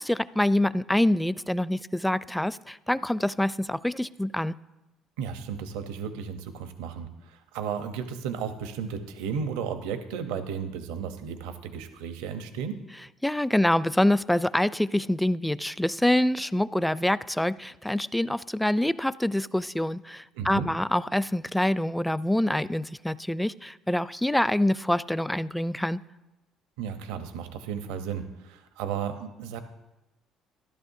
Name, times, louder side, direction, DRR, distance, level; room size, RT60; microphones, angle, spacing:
voice 1, 0.0-4.5 13.2-26.0, left 1 dB, 5° left, 17 dB, 0.4 m, -26 dB
voice 2, 5.2-12.8 20.3-20.7 26.8-29.6, right 7 dB, 85° right, 8 dB, 0.9 m, -34 dB
14.0 x 12.0 x 2.7 m, 1.0 s
supercardioid pair, 70°, 0 cm